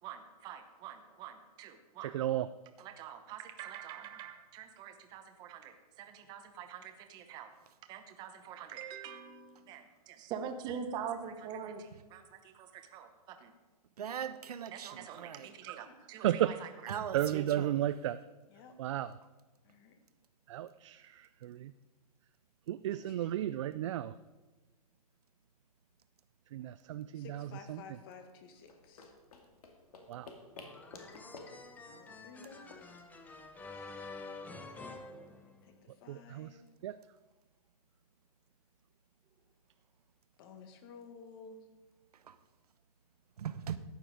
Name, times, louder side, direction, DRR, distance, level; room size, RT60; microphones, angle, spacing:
voice 1, 0.0-2.2 2.8-7.5 7.8-9.8 10.3-13.5 14.7-16.9, right 7 dB, 20° right, 0.9 m, -45 dB
voice 2, 2.1-2.5 15.7-15.8 16.2-16.5 17.1-18.2 18.8-19.1 20.5-21.7 22.7-24.1 26.5-27.2 30.1-30.3 36.1-36.5 36.8-36.9, right 12 dB, 50° right, 0.4 m, -33 dB
voice 3, 14.0-15.5 16.9-17.9 42.3-42.4 43.4-43.8, right 8 dB, 85° right, 1.0 m, -40 dB
voice 4, 19.6-20.0 22.9-23.3 27.1-29.1 31.9-32.9 35.6-36.7 40.4-41.7, left 5 dB, 40° left, 1.5 m, -53 dB
sound 1, 28.6-33.8, left 3 dB, 75° left, 2.4 m, -53 dB
sound 2, 30.6-36.0, left 3 dB, 10° left, 0.7 m, -49 dB
14.0 x 9.3 x 5.0 m
hypercardioid pair, 155°, 19 cm